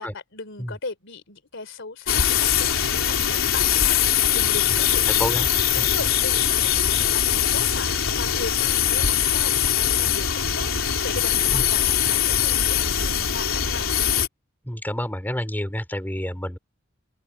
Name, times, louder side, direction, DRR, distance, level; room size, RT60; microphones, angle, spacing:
voice 1, 0.0-5.5 5.8-13.9, left 3 dB, 65° left, 3.6 m, -37 dB
sound 1, 2.1-14.3, left 9 dB, 90° left, 3.3 m, -22 dB
voice 2, 5.2-5.5 5.8-6.1 11.5-11.6 14.6-16.6, equal, 10° left, 3.8 m, -29 dB
open air
head